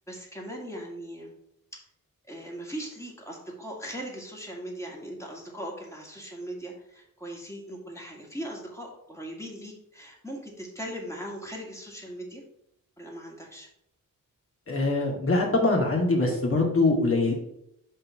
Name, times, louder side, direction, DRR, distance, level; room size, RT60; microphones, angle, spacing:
voice 1, 0.1-1.3 1.7-1.8 2.3-12.4 13.0-13.7, right 1 dB, 10° left, -2 dB, 2.0 m, -39 dB
voice 2, 14.7-17.3, left 2 dB, 40° left, -1 dB, 2.1 m, -23 dB
5.5 x 3.8 x 5.9 m, 0.77 s
wide cardioid pair, 95°, 35 cm